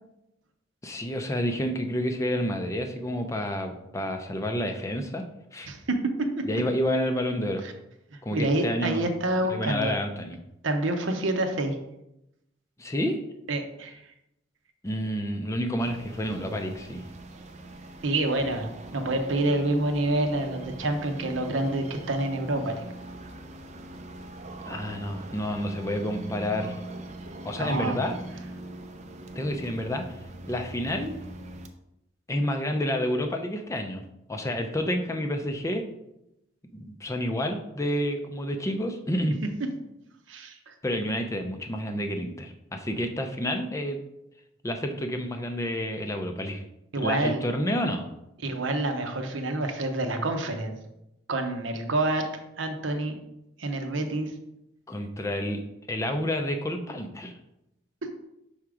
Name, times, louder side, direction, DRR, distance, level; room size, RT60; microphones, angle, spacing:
voice 1, 0.8-5.2 5.5-5.7 6.4-7.6 8.2-9.1 9.5-10.4 12.8-13.2 14.8-17.0 24.7-26.8 27.4-28.2 29.3-30.2 30.5-31.1 32.3-35.9 36.7-39.4 40.8-44.0 44.6-46.6 47.0-48.1 54.9-55.6 55.9-57.3, equal, 15° left, 5 dB, 0.4 m, -29 dB
voice 2, 5.7-6.5 7.6-7.7 8.3-9.9 10.6-11.8 13.5-14.0 18.0-22.8 27.6-28.0 40.3-40.7 46.9-47.4 48.4-50.8 51.3-52.3 52.6-53.2 53.6-54.3 58.0-58.1, right 2 dB, 80° right, 5 dB, 0.8 m, -27 dB
sound 1, 15.8-31.7, right 1 dB, 35° right, 0.5 m, -42 dB
5.8 x 3.6 x 4.9 m, 0.87 s
head